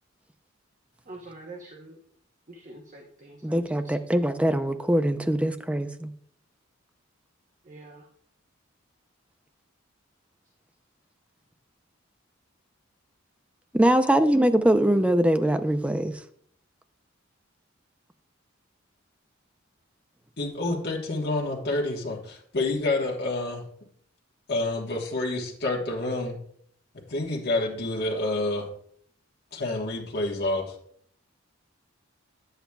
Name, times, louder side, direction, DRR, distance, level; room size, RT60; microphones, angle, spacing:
voice 1, 1.1-2.0 2.5-3.6 7.7-8.1, right 2 dB, 40° right, 1 dB, 0.9 m, -45 dB
voice 2, 3.4-6.1 13.7-16.1, right 1 dB, 5° right, 9 dB, 0.5 m, -22 dB
voice 3, 20.4-23.6 24.5-26.4 27.1-28.7 29.5-30.7, left 2 dB, 55° left, -2 dB, 1.4 m, -28 dB
10.0 x 8.0 x 2.3 m, 0.63 s
head